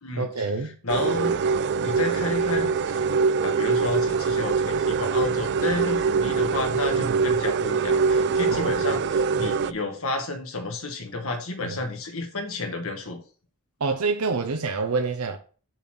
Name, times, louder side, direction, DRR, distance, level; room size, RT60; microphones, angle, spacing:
voice 1, 0.2-0.8 7.0-7.2 8.5-8.8 11.6-11.8 13.8-15.4, right 4 dB, 85° right, 0.8 m, -27 dB
voice 2, 0.8-1.3 1.8-3.0 3.4-13.2, left 2 dB, 65° left, 1.5 m, -31 dB
sound 1, 0.9-9.7, right 5 dB, 50° right, 0.4 m, -23 dB
7.1 x 4.0 x 6.2 m
head